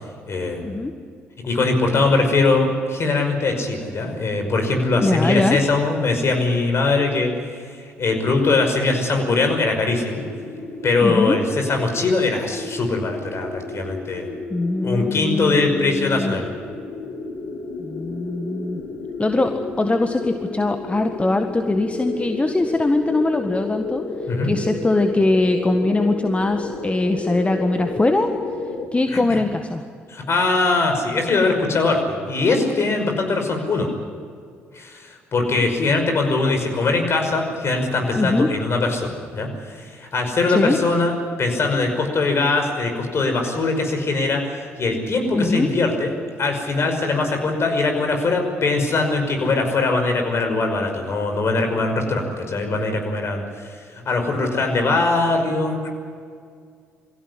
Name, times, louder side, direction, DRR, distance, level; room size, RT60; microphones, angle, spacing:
voice 1, 0.3-0.8 1.4-7.3 7.6-10.2 10.8-14.3 14.8-16.5 24.3-24.5 29.1-29.4 30.1-33.9 34.7-46.1 46.4-55.9, left 3 dB, 45° left, 4 dB, 5.6 m, -21 dB
voice 2, 5.0-5.6 11.0-11.4 14.5-16.4 17.8-18.8 19.2-24.0 24.5-28.3 28.9-29.8 38.2-38.5 40.5-40.8 45.3-45.7, left 2 dB, 20° left, 6 dB, 1.7 m, -21 dB
sound 1, 10.1-28.9, left 3 dB, 70° left, 3.3 m, -32 dB
23.0 x 16.0 x 9.9 m, 2.2 s
hypercardioid pair, 50°, 6 cm